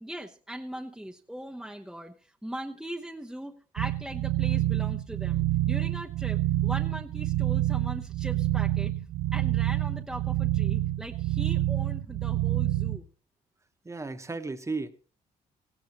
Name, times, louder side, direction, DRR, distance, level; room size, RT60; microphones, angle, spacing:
voice 1, 0.0-8.9 9.3-13.1, right 1 dB, 5° right, 1.0 m, -40 dB
sound 1, 3.8-13.0, right 15 dB, 75° right, 0.7 m, -27 dB
voice 2, 13.8-14.9, right 3 dB, 20° right, 1.3 m, -34 dB
17.5 x 15.5 x 3.1 m
cardioid pair, 80°, 15 cm